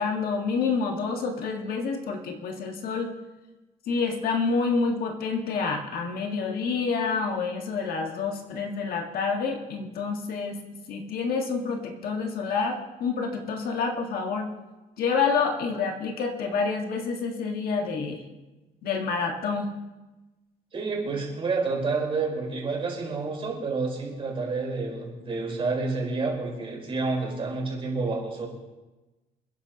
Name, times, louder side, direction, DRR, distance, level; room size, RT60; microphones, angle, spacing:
voice 1, 0.0-3.1 3.9-10.6 10.9-14.5 15.0-18.2 18.8-19.7, left 5 dB, 65° left, 2 dB, 1.9 m, -28 dB
voice 2, 20.7-28.5, right 3 dB, 35° right, -1 dB, 4.4 m, -29 dB
28.5 x 10.5 x 3.0 m, 1.1 s
cardioid pair, 150°, 17 cm